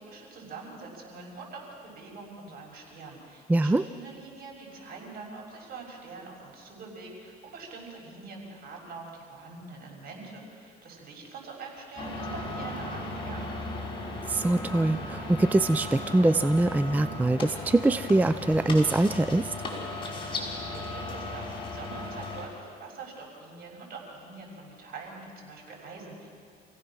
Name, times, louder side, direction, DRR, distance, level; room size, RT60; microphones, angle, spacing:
voice 1, 0.0-13.8 20.5-26.3, right 4 dB, 60° right, -1 dB, 6.5 m, -44 dB
voice 2, 3.5-3.8 14.3-19.5, right 2 dB, 10° right, 11 dB, 0.4 m, -23 dB
sound 1, 12.0-22.5, left 2 dB, 30° left, 5.2 m, -36 dB
28.0 x 16.5 x 6.2 m, 2.2 s
cardioid pair, 110°, 17 cm